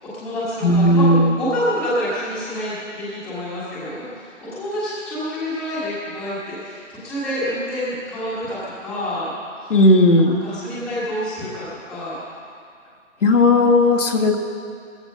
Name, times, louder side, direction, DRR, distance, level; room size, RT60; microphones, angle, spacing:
voice 1, 0.0-9.3 9.6-9.8 10.4-12.2, equal, ahead, -11 dB, 1.5 m, -27 dB
voice 2, 0.6-1.3 9.7-10.4 13.2-14.4, left 1 dB, 65° left, 1 dB, 1.7 m, -15 dB
16.0 x 14.5 x 5.6 m, 2.4 s
hypercardioid pair, 170°, 39 cm